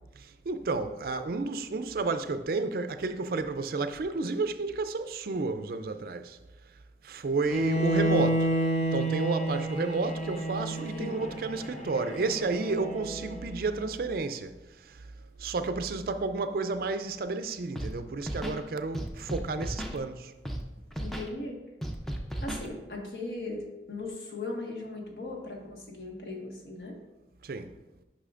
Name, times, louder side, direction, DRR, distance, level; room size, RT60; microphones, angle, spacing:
voice 1, 0.2-6.4 7.0-8.5 8.9-15.1 15.4-20.3 27.4-27.7, right 3 dB, 55° right, 0.4 m, -31 dB
Bowed string instrument, 7.5-13.5, right 1 dB, 40° left, 0.9 m, -30 dB
Scratching (performance technique), 17.7-17.9 18.2-18.6 18.9-20.0 20.4-20.6 20.9-21.3 21.8-22.7, equal, ahead, 0.5 m, -34 dB
voice 2, 21.0-21.6 22.4-27.0, left 2 dB, 60° left, 1.5 m, -38 dB
9.8 x 5.6 x 2.5 m
head